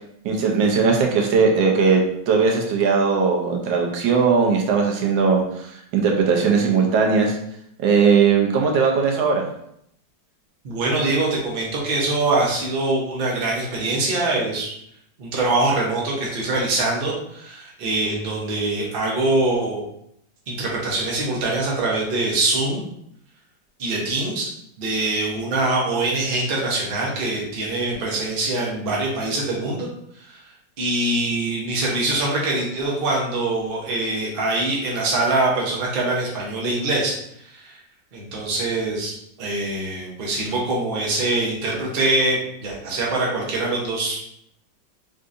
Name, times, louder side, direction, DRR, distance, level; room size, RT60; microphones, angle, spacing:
voice 1, 0.2-7.4 7.8-9.4, right 5 dB, 85° right, 1 dB, 1.3 m, -19 dB
voice 2, 10.6-14.7 15.2-19.8 20.5-22.8 23.8-24.5 24.8-29.9 30.1-30.4 30.8-37.2 37.4-37.8 38.1-39.1 39.4-44.2, right 2 dB, 45° right, -3 dB, 0.7 m, -23 dB
3.6 x 2.6 x 2.5 m, 0.73 s
omnidirectional pair, 2.0 m